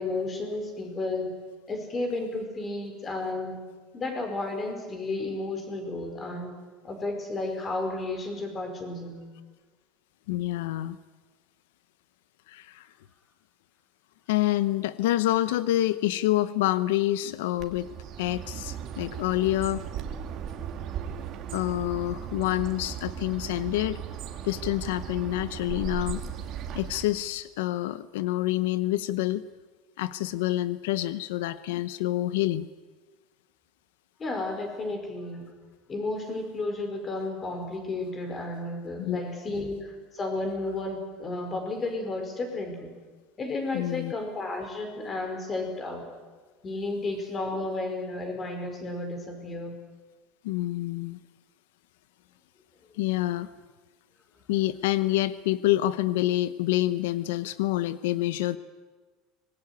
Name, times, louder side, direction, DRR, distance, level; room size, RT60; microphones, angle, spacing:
voice 1, 0.0-1.4 1.7-3.7 3.9-6.6 6.8-9.2 34.2-35.5 35.9-42.9 43.4-46.1 46.6-49.8, left 2 dB, 20° left, 6 dB, 4.9 m, -32 dB
voice 2, 10.3-11.0 12.5-12.9 14.3-17.9 18.2-19.8 21.5-24.0 24.4-26.2 26.7-29.4 30.0-32.7 39.0-39.2 43.7-44.1 50.4-51.2 53.0-53.5 54.5-58.6, left 15 dB, 90° left, 15 dB, 0.8 m, -27 dB
Bird, 17.6-27.3, right 8 dB, 40° right, 2.4 m, -37 dB
24.5 x 20.5 x 9.5 m, 1.4 s
cardioid pair, 155°, 0 cm